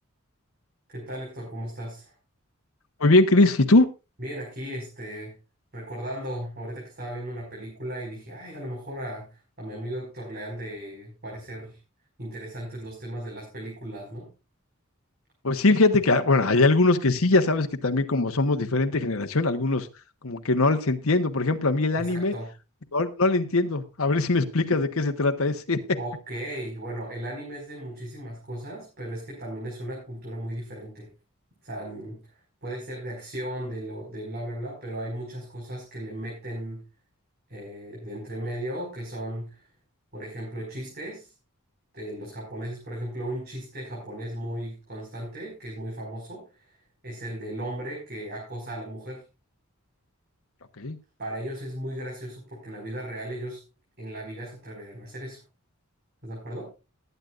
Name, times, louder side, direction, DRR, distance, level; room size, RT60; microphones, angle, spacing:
voice 1, 0.9-2.1 4.2-5.3 5.7-9.3 9.6-11.8 12.2-14.3 22.0-22.5 26.0-31.1 31.6-32.2 32.6-36.8 37.5-39.7 40.1-41.3 41.9-46.6 47.0-49.2 51.2-53.6 54.0-55.4 56.2-56.7, right 1 dB, 45° right, -3 dB, 5.4 m, -36 dB
voice 2, 3.0-3.9 15.4-19.9 20.2-22.3 22.9-26.0 50.8-51.0, left 2 dB, 70° left, 5 dB, 1.1 m, -21 dB
20.5 x 9.2 x 2.5 m, 0.29 s
head